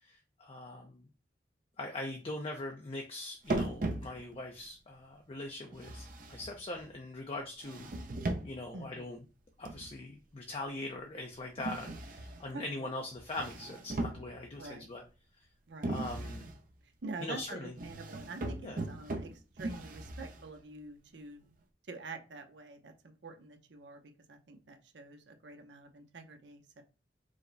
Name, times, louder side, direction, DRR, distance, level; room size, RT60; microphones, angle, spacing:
voice 1, 0.0-1.0 1.8-7.9 8.4-9.2 9.6-15.0 15.9-16.5 17.2-17.7 18.6-18.8, left 2 dB, 35° left, 2 dB, 0.6 m, -42 dB
sound 1, 3.5-4.5 5.7-6.9 7.6-8.7 9.7-10.1 11.6-12.5 13.2-14.6 15.8-16.6 17.8-20.6, right 2 dB, 50° right, 0.7 m, -38 dB
voice 2, 8.7-9.1 12.5-12.9 14.6-14.9 15.7-16.4 17.0-21.4 21.9-24.0 24.3-26.8, right 3 dB, 90° right, 5 dB, 0.8 m, -47 dB
5.0 x 2.2 x 3.9 m, 0.34 s
head